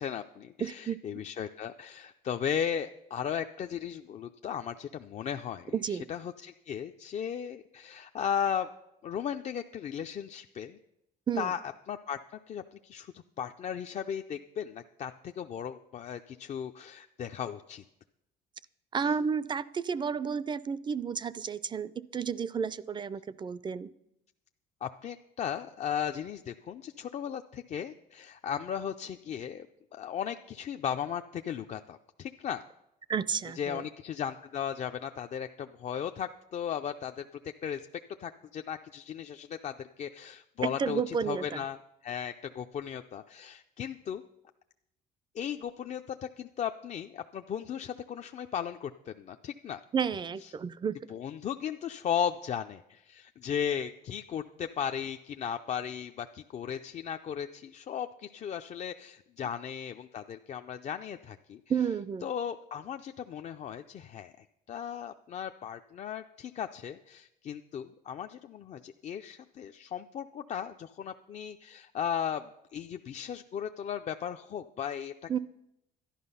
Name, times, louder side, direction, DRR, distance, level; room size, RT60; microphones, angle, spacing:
voice 1, 0.0-8.7 9.0-10.8 11.4-11.6 11.9-12.2 12.5-17.8 19.0-19.1 24.8-29.7 29.9-32.6 33.5-37.9 38.2-44.2 45.3-49.8 50.4-50.5 51.1-61.6 62.2-75.1, left 8 dB, 45° left, 7 dB, 0.4 m, -36 dB
voice 2, 0.6-1.2 5.7-6.1 11.3-11.5 18.9-23.9 33.1-33.8 40.6-41.6 49.9-51.0 61.7-62.3 75.3-75.4, right 6 dB, 25° right, 18 dB, 0.4 m, -32 dB
11.5 x 11.0 x 5.5 m, 0.84 s
cardioid pair, 110°, 17 cm